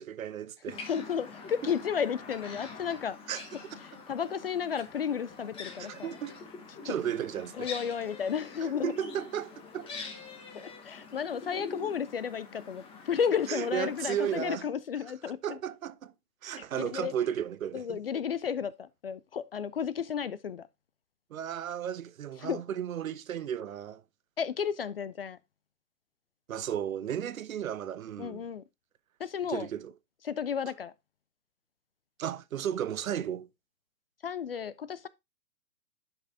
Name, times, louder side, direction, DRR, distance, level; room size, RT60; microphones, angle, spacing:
voice 1, 0.0-0.8 1.6-1.7 3.3-3.8 5.8-6.4 6.8-7.7 8.6-9.9 13.5-14.7 15.4-16.1 16.4-18.0 21.3-24.0 26.5-28.5 29.5-29.9 32.2-33.5, right 9 dB, 60° right, 0.8 m, -34 dB
sound 1, 0.7-14.6, left 4 dB, 10° left, 1.2 m, -45 dB
voice 2, 0.9-3.2 4.1-6.1 6.9-7.0 7.6-8.9 10.5-15.6 16.6-17.1 17.7-20.7 22.4-22.6 24.4-25.4 28.2-28.6 29.2-29.7 30.3-30.9 34.2-35.1, left 7 dB, 40° left, 0.4 m, -33 dB
11.0 x 5.9 x 2.7 m
hypercardioid pair, 135°, 47 cm